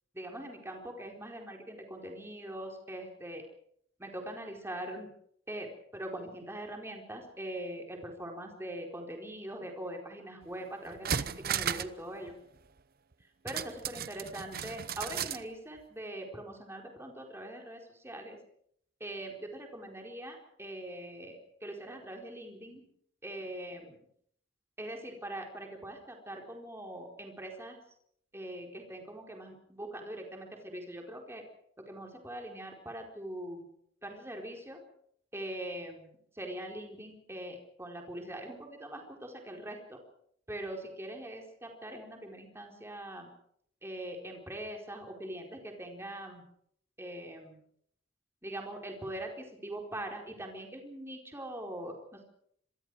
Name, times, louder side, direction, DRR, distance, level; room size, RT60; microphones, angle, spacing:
voice 1, 0.1-3.4 4.0-5.1 5.5-12.3 13.4-18.4 19.0-22.8 23.2-24.0 24.8-27.8 28.3-31.5 31.8-33.7 34.0-34.8 35.3-40.0 40.5-43.3 43.8-46.4 47.0-47.6 48.4-52.2, right 1 dB, 15° right, 2 dB, 4.5 m, -42 dB
sound 1, 10.4-10.5 10.9-12.0 12.3-12.4 13.5-15.4 15.8-15.9, right 8 dB, 50° right, 0.9 m, -35 dB
26.5 x 22.5 x 5.0 m, 0.67 s
head